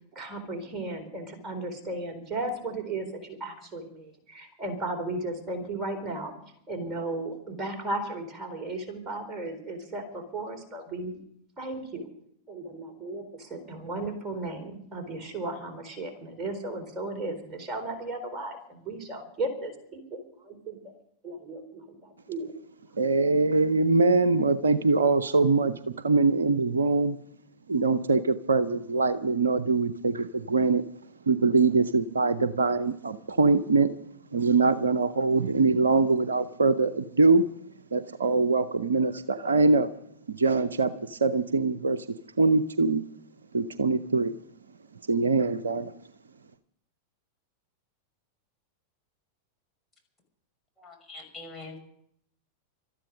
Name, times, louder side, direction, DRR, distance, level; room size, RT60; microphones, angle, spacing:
voice 1, 0.1-6.3 6.7-11.2 11.6-12.1 12.5-20.9 21.2-22.5, right 2 dB, 20° right, 3.9 m, -35 dB
voice 2, 23.0-27.2 27.7-30.8 31.3-33.9 34.3-37.4 37.9-39.9 40.4-42.1 42.4-43.0 43.5-44.3 45.1-45.9, right 3 dB, 70° right, 0.6 m, -23 dB
voice 3, 50.8-51.8, left 2 dB, 5° left, 5.6 m, -43 dB
19.0 x 13.0 x 5.3 m
figure-of-eight pair, 90°, 0 cm